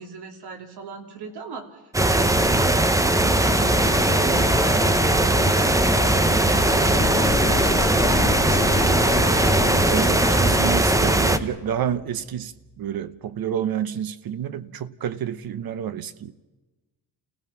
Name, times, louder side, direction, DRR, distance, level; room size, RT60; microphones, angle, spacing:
voice 1, 0.0-1.8 2.1-9.9, right 6 dB, 90° right, 3.1 m, -37 dB
sound 1, 1.9-11.4, right 1 dB, 10° right, 0.7 m, -19 dB
sound 2, 3.3-10.6, left 4 dB, 25° left, 2.2 m, -32 dB
sound 3, 6.7-12.8, left 7 dB, 45° left, 1.5 m, -33 dB
voice 2, 9.8-16.3, right 9 dB, 65° right, 1.0 m, -29 dB
30.0 x 16.5 x 5.8 m
wide cardioid pair, 150°, 38 cm